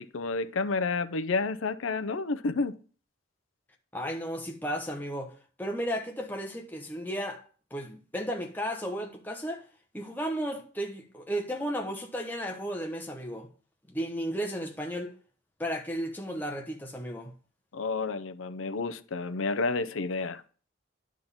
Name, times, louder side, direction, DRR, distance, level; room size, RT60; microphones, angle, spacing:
voice 1, 0.0-2.8 17.7-20.4, left 3 dB, 90° left, 0.6 m, -30 dB
voice 2, 3.9-5.3 5.6-7.4 7.7-9.6 9.9-13.5 13.9-15.1 15.6-17.3, equal, 10° left, 1.1 m, -34 dB
10.5 x 3.7 x 7.1 m
head